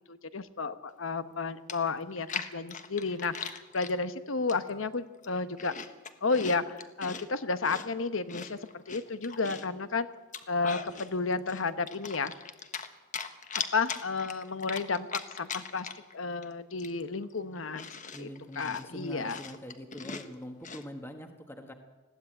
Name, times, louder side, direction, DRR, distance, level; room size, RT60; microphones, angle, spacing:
voice 1, 0.1-5.7 6.2-6.6 7.0-8.6 8.9-10.1 10.5-12.3 13.7-15.9 16.1-17.9 18.2-18.3 18.6-19.4, left 4 dB, 75° left, 11 dB, 1.1 m, -32 dB
Chewing mastication, 1.3-1.4 1.7-4.0 4.5-4.8 5.2-7.2 7.6-9.7 10.2-11.1 11.5-12.9 13.1-16.1 16.4-16.5 16.8-20.8, left 6 dB, 40° left, 1.3 m, -40 dB
voice 2, 18.1-21.7, equal, 10° left, 4 dB, 1.5 m, -44 dB
20.5 x 15.5 x 8.8 m, 1.2 s
head